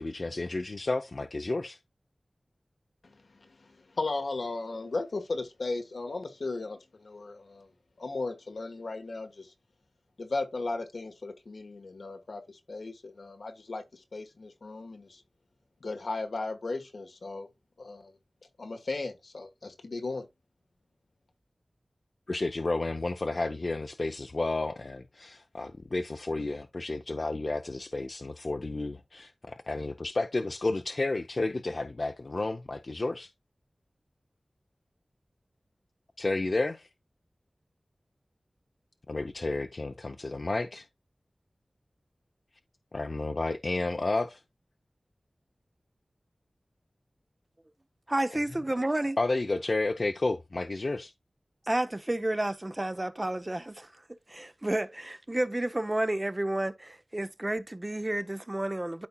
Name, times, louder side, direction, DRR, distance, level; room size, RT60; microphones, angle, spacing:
voice 1, 0.0-1.8 22.3-33.3 36.2-36.9 39.1-40.9 42.9-44.4 49.2-51.1, left 2 dB, 55° left, 0.6 m, -31 dB
voice 2, 3.0-7.7 8.0-9.5 10.2-15.2 15.8-17.5 17.8-18.1 18.6-20.2, left 3 dB, 85° left, 1.3 m, -36 dB
voice 3, 48.1-49.2 51.7-53.9 54.3-59.1, right 1 dB, 25° right, 0.6 m, -31 dB
12.5 x 4.3 x 2.3 m
wide cardioid pair, 75°, 0 cm